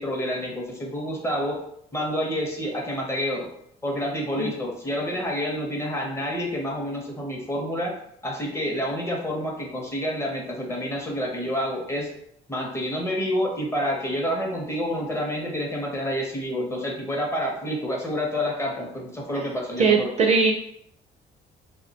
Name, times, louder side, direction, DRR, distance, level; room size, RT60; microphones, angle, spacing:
voice 1, 0.0-1.6 1.9-3.5 3.8-7.9 8.2-12.1 12.5-20.1, equal, 15° left, -1 dB, 0.6 m, -28 dB
voice 2, 19.8-20.5, right 4 dB, 40° right, 2 dB, 0.4 m, -20 dB
2.3 x 2.1 x 2.7 m, 0.72 s
cardioid pair, 110°, 17 cm